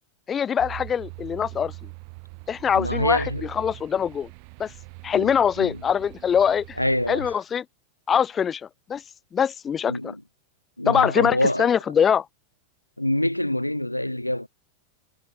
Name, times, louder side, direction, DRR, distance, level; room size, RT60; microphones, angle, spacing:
voice 1, 0.3-1.7 2.5-4.3 4.6-4.7 5.0-6.8 7.1-7.6 8.1-8.6 8.9-9.0 9.3-10.1 10.9-12.3, left 7 dB, 20° left, 0.5 m, -23 dB
sound 1, 0.6-7.4, right 40 dB or more, 45° right, 3.4 m, -41 dB
voice 2, 2.7-3.5 5.2-5.8 6.8-7.3 9.9-10.2 10.8-11.7 13.0-14.5, left 1 dB, 85° left, 0.8 m, -25 dB
figure-of-eight pair, 90°, 0 cm